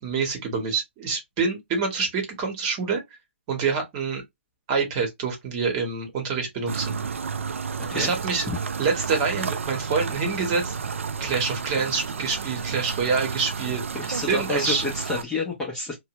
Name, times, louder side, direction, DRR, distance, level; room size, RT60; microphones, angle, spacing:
voice 1, 0.0-3.0 3.5-4.2 4.7-7.0 7.9-8.5 8.8-10.8 11.2-13.8 14.3-14.9, right 5 dB, 30° right, 1.1 m, -26 dB
sound 1, 6.7-15.2, right 5 dB, 80° right, 0.4 m, -31 dB
voice 2, 13.9-16.0, left 3 dB, 10° left, 0.7 m, -29 dB
2.7 x 2.1 x 2.9 m
hypercardioid pair, 145°, 7 cm